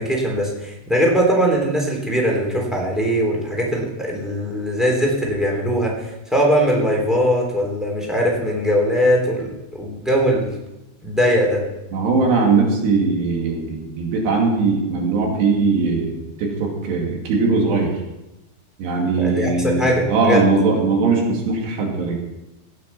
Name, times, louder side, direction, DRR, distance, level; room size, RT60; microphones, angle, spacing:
voice 1, 0.0-6.0 6.3-9.5 9.8-10.5 11.0-11.6 19.2-20.4, equal, ahead, -2 dB, 2.8 m, -20 dB
voice 2, 11.9-17.9 18.8-22.2, right 4 dB, 85° right, 0 dB, 4.6 m, -20 dB
17.0 x 8.4 x 5.9 m, 0.96 s
omnidirectional pair, 4.8 m